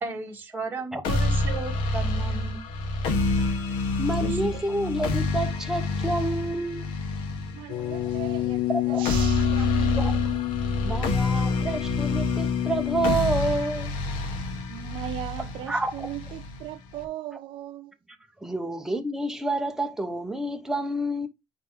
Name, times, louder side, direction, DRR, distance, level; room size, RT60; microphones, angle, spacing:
voice 1, 0.0-2.6 4.2-4.6, right 3 dB, 20° right, 1.9 m, -34 dB
sound 1, 1.0-17.0, left 2 dB, 75° left, 1.6 m, -28 dB
voice 2, 4.0-6.9 8.7-9.1 10.0-10.2 10.8-13.9 15.7-16.1 18.4-21.3, right 2 dB, 5° right, 1.0 m, -29 dB
voice 3, 7.5-10.4 14.7-17.9, right 14 dB, 65° right, 0.7 m, -38 dB
sound 2, 7.7-13.2, left 19 dB, 55° left, 0.4 m, -28 dB
9.1 x 3.4 x 3.7 m
cardioid pair, 155°, 9 cm